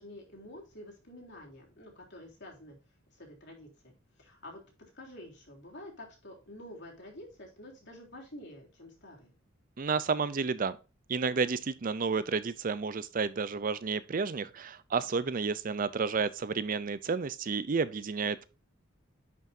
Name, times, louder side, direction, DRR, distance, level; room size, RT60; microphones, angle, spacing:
voice 1, 0.0-2.8 3.1-4.6 4.9-9.3, left 1 dB, 55° left, 3.4 m, -49 dB
voice 2, 9.8-10.8 11.1-18.4, right 5 dB, 40° right, 0.5 m, -31 dB
10.5 x 5.8 x 2.7 m
head